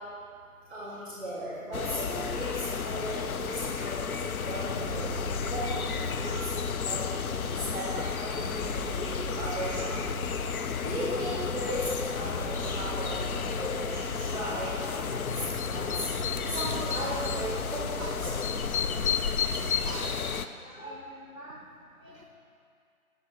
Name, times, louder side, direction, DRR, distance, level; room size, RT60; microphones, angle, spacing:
voice 1, 0.7-4.1 4.4-5.8 6.2-10.0 10.5-16.0 16.5-17.9 18.2-18.3, right 1 dB, 5° left, -9 dB, 1.0 m, -37 dB
sound 1, 1.7-20.5, left 7 dB, 75° left, 0.5 m, -32 dB
voice 2, 2.4-2.9 3.2-3.3 5.7-5.8 6.1-6.5 9.3-10.1 10.6-10.8 13.4-13.5 17.5-17.7 18.0-18.6 19.2-22.2, right 2 dB, 35° right, 1 dB, 0.5 m, -46 dB
sound 2, 4.7-6.9 7.4-14.5 15.0-20.0, right 1 dB, 25° left, 2.1 m, -40 dB
10.5 x 6.8 x 2.9 m, 2.3 s
figure-of-eight pair, 165°, 43 cm